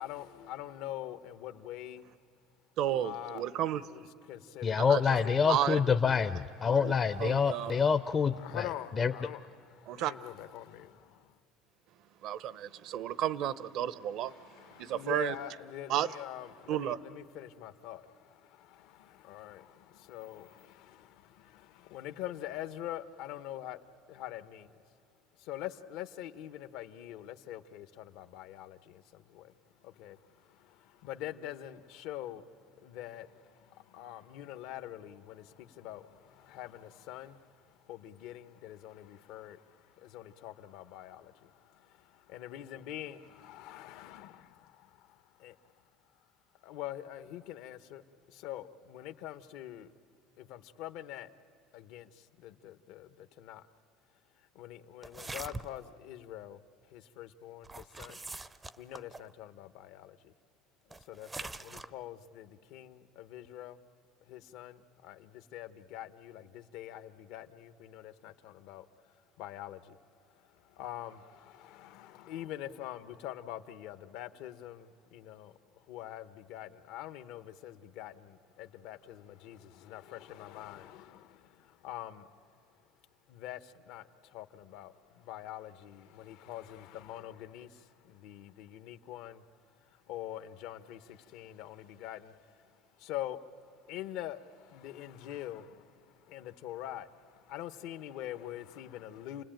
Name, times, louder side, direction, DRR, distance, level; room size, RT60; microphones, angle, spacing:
voice 1, 0.0-2.1 2.9-3.5 3.9-4.8 5.2-5.8 7.0-7.9 8.4-11.4 14.3-24.7 25.4-41.4 42.3-45.7 46.6-49.9 50.4-51.3 51.7-53.6 54.5-56.6 56.9-58.2 58.8-60.3 61.0-63.8 64.3-70.0 70.3-82.4 83.3-89.4 89.8-93.4 93.8-99.4, left 12 dB, 70° left, 1.0 m, -45 dB
voice 2, 2.8-3.8 4.9-5.0 5.5-5.8 6.8-6.9 7.2-7.7 9.9-10.1 12.2-14.3 14.8-15.3 15.9-16.1 16.7-17.0, right 11 dB, 60° right, 0.8 m, -32 dB
voice 3, 4.6-8.6 9.0-9.1, left 6 dB, 30° left, 0.6 m, -27 dB
sound 1, 55.0-55.9 57.6-59.3 60.9-61.9, right 2 dB, 15° right, 0.5 m, -43 dB
29.5 x 19.5 x 9.0 m
cardioid pair, 125°, 0 cm